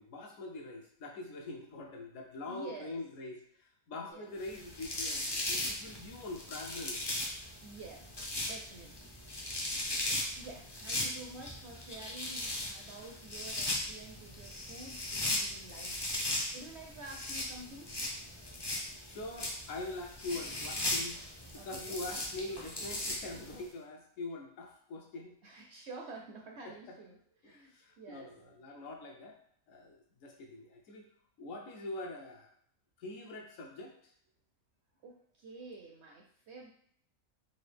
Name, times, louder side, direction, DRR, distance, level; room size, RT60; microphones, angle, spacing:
voice 1, 0.0-7.1 19.0-21.2 21.5-25.3 26.6-27.0 27.4-29.4 29.7-31.1 31.4-32.5 33.0-34.1, left 2 dB, 65° left, 1 dB, 0.9 m, -44 dB
voice 2, 2.5-3.0 3.9-4.3 7.6-8.1 8.4-9.1 10.0-16.0 16.5-17.9 21.5-22.0 25.4-27.2 27.4-28.3 35.0-36.7, right 3 dB, 65° right, 0 dB, 0.7 m, -49 dB
sound 1, 4.4-23.6, left 1 dB, 40° left, 0.3 m, -38 dB
4.0 x 2.4 x 3.3 m, 0.66 s
omnidirectional pair, 1.5 m